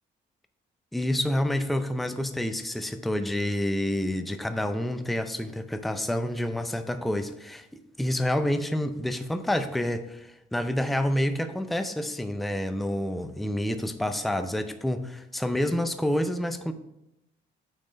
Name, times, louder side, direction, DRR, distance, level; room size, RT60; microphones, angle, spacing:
voice 1, 0.9-7.7 8.0-16.7, left 1 dB, ahead, 9 dB, 0.5 m, -28 dB
6.4 x 4.2 x 5.1 m, 0.88 s
cardioid pair, 90°, 20 cm